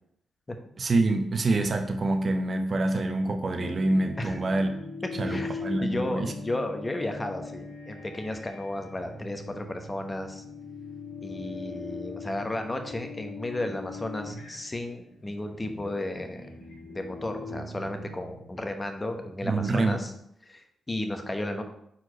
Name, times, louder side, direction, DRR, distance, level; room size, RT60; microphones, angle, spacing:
voice 1, 0.8-4.7 5.2-6.3 19.4-20.0, right 2 dB, 50° right, 6 dB, 0.8 m, -26 dB
sound 1, 3.5-18.7, left 3 dB, 75° left, 1.8 m, -41 dB
voice 2, 5.2-10.4 11.2-16.5 16.9-20.1 20.5-21.6, left 1 dB, 25° left, 5 dB, 1.0 m, -34 dB
4.6 x 4.2 x 5.1 m, 0.74 s
supercardioid pair, 55°, 0 cm